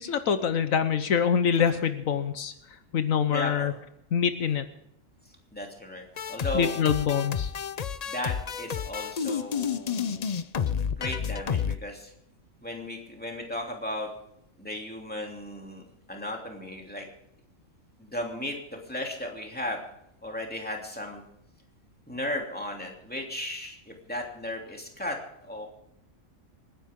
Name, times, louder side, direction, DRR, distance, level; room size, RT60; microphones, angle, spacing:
voice 1, 0.0-2.5 2.9-3.7 4.1-4.6 6.5-7.5, left 7 dB, 80° left, 10 dB, 1.4 m, -25 dB
voice 2, 3.3-3.7 5.5-6.8 8.1-10.3 10.9-12.1 12.6-14.1 14.6-15.8 16.1-17.1 18.0-19.8 20.2-21.2 22.1-25.7, left 1 dB, 5° left, 0 dB, 2.9 m, -35 dB
sound 1, 6.2-11.8, left 7 dB, 45° left, 0.5 m, -30 dB
27.5 x 10.5 x 3.7 m, 0.77 s
omnidirectional pair, 1.4 m